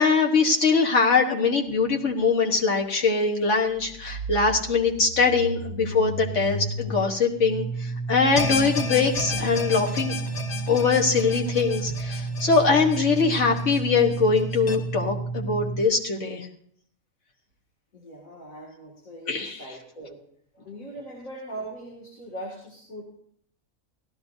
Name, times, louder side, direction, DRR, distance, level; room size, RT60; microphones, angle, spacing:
voice 1, 0.0-10.2 10.7-16.5 19.3-19.6, left 4 dB, 65° left, 1 dB, 1.6 m, -22 dB
sound 1, 1.9-2.0 2.2-2.3 3.8-15.8, right 3 dB, 60° right, 1.0 m, -32 dB
sound 2, 8.4-14.7, left 4 dB, 35° left, 0.8 m, -33 dB
voice 2, 17.9-20.2 20.5-23.0, right 1 dB, 90° left, -3 dB, 2.7 m, -40 dB
16.5 x 13.0 x 2.7 m, 0.65 s
omnidirectional pair, 1.4 m